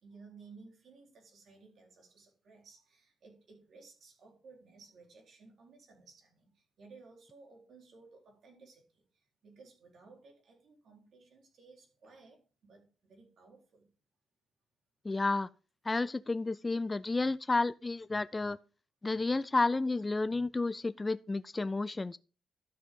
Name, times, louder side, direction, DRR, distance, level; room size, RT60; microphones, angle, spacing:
voice 1, 0.0-13.9, right 4 dB, 55° right, 3.8 m, -57 dB
voice 2, 15.0-15.5 15.9-18.6 19.0-22.2, left 3 dB, 20° left, 0.3 m, -31 dB
12.5 x 6.6 x 3.7 m
cardioid pair, 140°, 0 cm